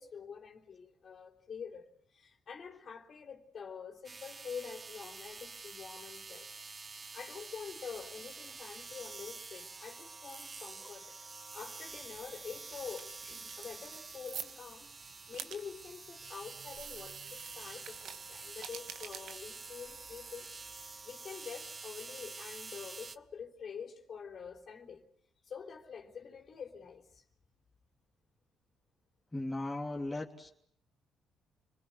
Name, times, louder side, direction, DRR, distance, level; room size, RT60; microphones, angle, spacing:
voice 1, 0.0-11.1 11.5-25.0 25.4-27.2, left 6 dB, 50° left, 3.7 m, -47 dB
sound 1, 4.0-23.2, right 4 dB, 30° right, 1.0 m, -48 dB
sound 2, 11.9-21.1, right 8 dB, 75° right, 1.9 m, -50 dB
voice 2, 29.3-30.5, left 2 dB, 15° left, 3.2 m, -37 dB
30.0 x 21.5 x 8.0 m
cardioid pair, 90°, 0 cm